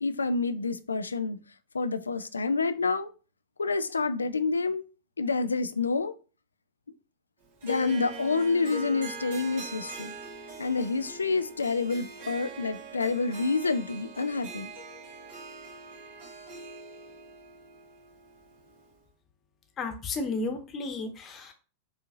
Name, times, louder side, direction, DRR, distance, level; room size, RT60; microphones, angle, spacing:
voice 1, 0.0-1.4 1.7-3.1 3.6-4.8 5.2-6.1 7.6-10.1 10.6-14.7, left 4 dB, 75° left, 0.3 m, -28 dB
Harp, 7.6-18.9, right 2 dB, 55° right, 1.7 m, -43 dB
voice 2, 19.8-21.5, left 3 dB, 25° left, 1.0 m, -33 dB
4.8 x 2.7 x 2.6 m
figure-of-eight pair, 90°, 0 cm